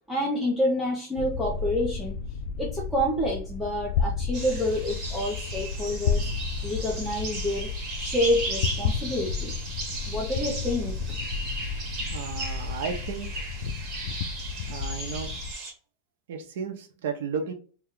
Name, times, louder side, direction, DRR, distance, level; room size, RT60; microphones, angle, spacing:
voice 1, 0.1-2.2 2.6-6.3 6.6-9.5 10.1-10.9, left 1 dB, ahead, -4 dB, 0.7 m, -28 dB
sound 1, 1.2-15.5, left 5 dB, 60° left, 0.3 m, -32 dB
sound 2, 4.3-15.7, right 2 dB, 30° right, 1.1 m, -36 dB
voice 2, 12.1-13.5 14.7-15.3 16.3-17.5, right 6 dB, 80° right, 4 dB, 0.6 m, -33 dB
2.9 x 2.3 x 3.5 m, 0.39 s
supercardioid pair, 155°, 0 cm